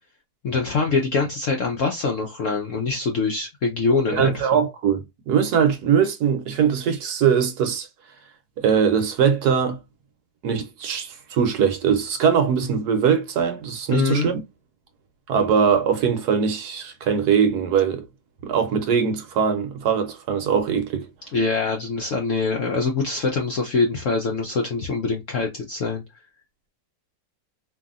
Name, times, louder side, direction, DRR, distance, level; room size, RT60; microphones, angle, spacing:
voice 1, 0.4-4.6 13.9-14.3 21.3-26.0, left 4 dB, 70° left, 0.7 m, -24 dB
voice 2, 4.1-7.9 8.6-9.8 10.4-14.4 15.3-18.0 18.4-21.1, right 7 dB, 65° right, 1.1 m, -21 dB
2.9 x 2.6 x 2.4 m
omnidirectional pair, 2.0 m